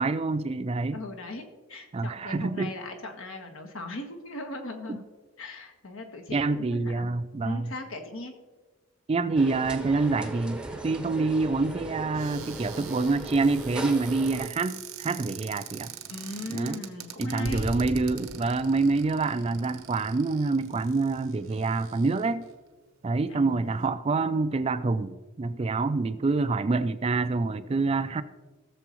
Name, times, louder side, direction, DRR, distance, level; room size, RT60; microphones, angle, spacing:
voice 1, 0.0-1.0 1.9-2.7 4.9-5.0 6.3-7.7 9.1-15.9 16.5-16.8 17.2-22.4 23.0-28.2, right 3 dB, 30° right, 12 dB, 0.3 m, -27 dB
voice 2, 0.9-5.0 5.4-7.1 7.4-8.3 16.1-17.7 23.3-23.8, left 2 dB, 75° left, 4 dB, 1.4 m, -39 dB
sound 1, 9.3-14.5, right 1 dB, 5° right, 0.7 m, -38 dB
Cupboard open or close, 12.1-22.5 23.2-23.3 23.5-23.9, right 10 dB, 80° right, 0.9 m, -45 dB
Explosion, 17.4-20.7, equal, 50° left, 1.7 m, -39 dB
16.5 x 7.0 x 3.1 m, 1.2 s
head